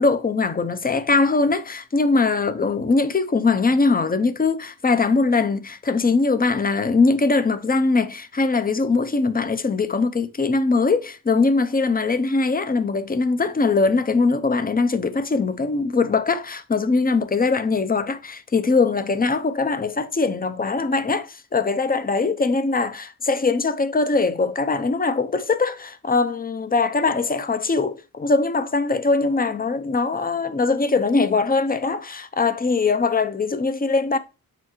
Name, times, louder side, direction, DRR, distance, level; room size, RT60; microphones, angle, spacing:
voice 1, 0.0-34.2, left 3 dB, 25° left, 0.5 m, -21 dB
6.8 x 4.7 x 3.0 m
wide cardioid pair, 130°, 37 cm